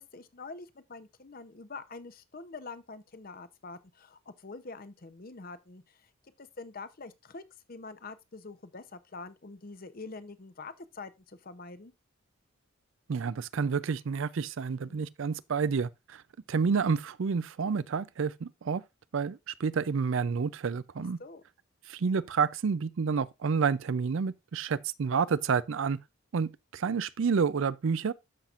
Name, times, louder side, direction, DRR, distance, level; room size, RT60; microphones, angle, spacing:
voice 1, 0.0-6.1 6.4-7.4 7.7-11.9 14.8-15.1 21.2-21.4, left 3 dB, 40° left, 0.7 m, -45 dB
voice 2, 13.1-16.2 16.5-18.8 19.1-21.2 21.9-26.0 26.3-28.1, right 5 dB, 60° right, 0.4 m, -29 dB
13.0 x 5.8 x 2.5 m
head